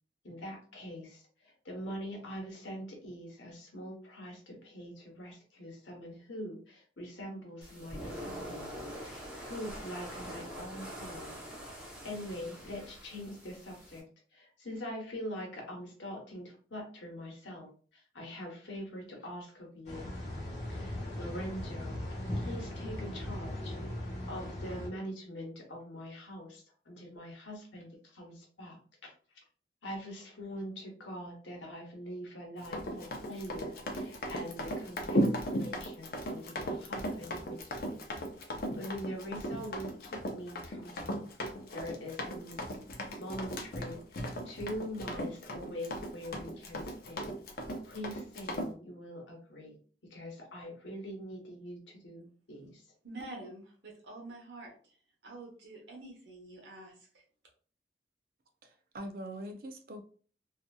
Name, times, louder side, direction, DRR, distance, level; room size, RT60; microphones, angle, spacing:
voice 1, 0.2-11.4 12.0-14.1 14.3-17.7 18.1-20.1 20.7-23.8 24.3-28.8 29.8-38.0 38.7-41.3 41.7-42.6 43.2-47.4 47.8-49.8 50.1-52.8, equal, 90° left, 1.0 m, -43 dB
sound 1, 7.6-14.0, equal, 5° right, 1.0 m, -44 dB
sound 2, 19.9-24.9, left 1 dB, 40° left, 1.1 m, -38 dB
Run, 32.6-48.7, equal, 55° left, 0.5 m, -36 dB
voice 2, 53.0-55.0 55.2-57.2, right 2 dB, 75° right, 1.0 m, -47 dB
voice 3, 58.6-60.0, right 1 dB, 55° right, 0.4 m, -43 dB
2.8 x 2.6 x 2.3 m
head